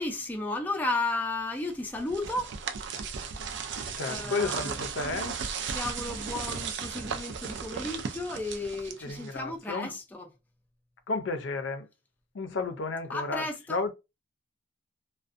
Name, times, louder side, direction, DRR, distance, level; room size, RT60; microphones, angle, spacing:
voice 1, 0.0-2.5 4.0-4.9 5.7-10.3 13.1-13.9, left 2 dB, 10° left, 0.4 m, -34 dB
sound 1, 1.7-9.5, right 6 dB, 65° right, 0.4 m, -36 dB
voice 2, 3.9-5.4 9.0-9.9 11.1-11.9 12.3-13.4 13.7-13.9, left 3 dB, 75° left, 0.5 m, -32 dB
2.5 x 2.1 x 2.4 m
head